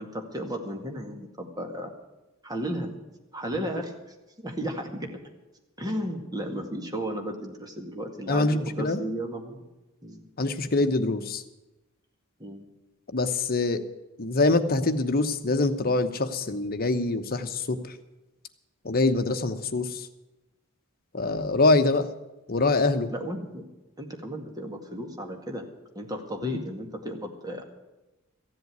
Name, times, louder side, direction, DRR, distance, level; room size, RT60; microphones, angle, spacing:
voice 1, 0.0-1.9 2.4-2.9 3.3-3.9 4.4-5.1 5.8-9.7 10.0-10.3 12.4-12.6 23.1-23.7 24.0-25.7 26.0-27.6, right 1 dB, 20° right, 3 dB, 2.0 m, -34 dB
voice 2, 8.3-9.0 10.4-11.4 13.1-13.8 14.2-18.0 18.8-20.1 21.1-22.1 22.5-23.1 26.4-26.6, left 2 dB, 45° left, 7 dB, 1.1 m, -24 dB
15.0 x 7.8 x 9.5 m, 1.0 s
head